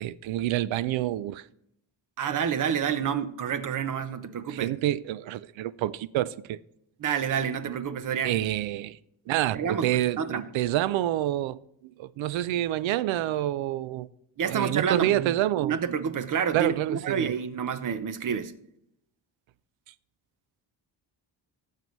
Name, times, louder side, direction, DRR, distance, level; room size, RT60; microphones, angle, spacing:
voice 1, 0.0-1.4 4.5-6.6 8.2-9.0 9.3-14.1 14.5-15.8 16.5-17.3, right 13 dB, 80° right, 0.5 m, -28 dB
voice 2, 2.2-4.7 7.0-8.4 9.5-10.4 14.4-18.5, right 7 dB, 45° right, 0.8 m, -29 dB
17.5 x 7.6 x 3.1 m
cardioid pair, 165°, 45 cm